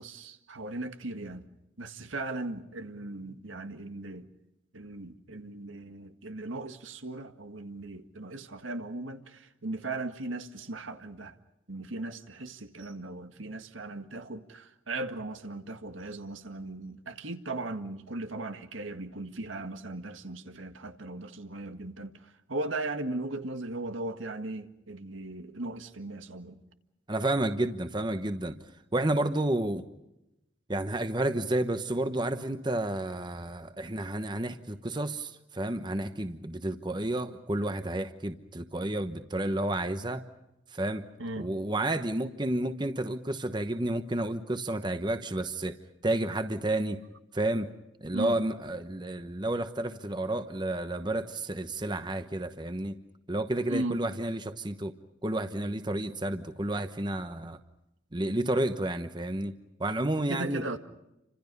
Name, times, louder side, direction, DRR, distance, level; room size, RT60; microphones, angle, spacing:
voice 1, 0.0-1.5 1.8-4.3 4.7-11.3 11.7-26.6 41.2-41.5 48.1-48.4 53.7-54.0 60.3-60.8, right 2 dB, 85° right, 1.8 m, -37 dB
voice 2, 27.1-28.6 28.9-29.8 30.7-40.2 40.7-41.0 41.4-45.8 46.0-47.0 47.3-47.7 48.0-53.0 53.3-54.9 55.2-57.6 58.1-59.5 59.8-60.6, right 1 dB, 25° right, 1.0 m, -31 dB
30.0 x 26.0 x 5.4 m
head